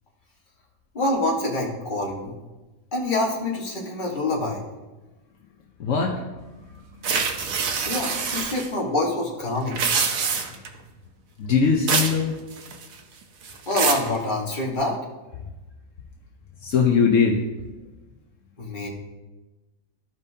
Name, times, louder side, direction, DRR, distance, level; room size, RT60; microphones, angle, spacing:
voice 1, 0.9-2.3 2.9-4.6 7.8-9.8 13.7-15.0 18.6-18.9, left 2 dB, 35° left, -3 dB, 1.6 m, -26 dB
voice 2, 5.8-6.2 7.0-7.2 10.3-10.5 11.4-12.4 16.6-17.4, left 5 dB, 70° left, 1 dB, 1.1 m, -21 dB
sound 1, 7.0-8.7 9.6-10.7 11.9-12.2 12.5-13.0 13.4-14.1, right 5 dB, 85° right, 1.2 m, -25 dB
14.0 x 5.4 x 2.7 m, 1.1 s
omnidirectional pair, 1.4 m